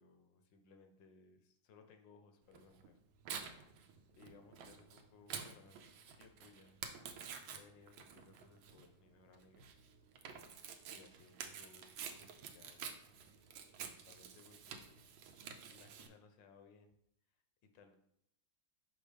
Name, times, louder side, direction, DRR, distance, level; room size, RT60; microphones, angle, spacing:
voice 1, 0.0-3.0 3.3-6.8 7.2-9.7 10.9-12.8 13.1-15.0 15.7-17.0 17.7-18.0, left 4 dB, 70° left, 6 dB, 1.4 m, -64 dB
Tearing, 2.5-16.1, right 7 dB, 80° right, 1.4 m, -50 dB
5.9 x 5.4 x 3.4 m, 0.74 s
omnidirectional pair, 2.2 m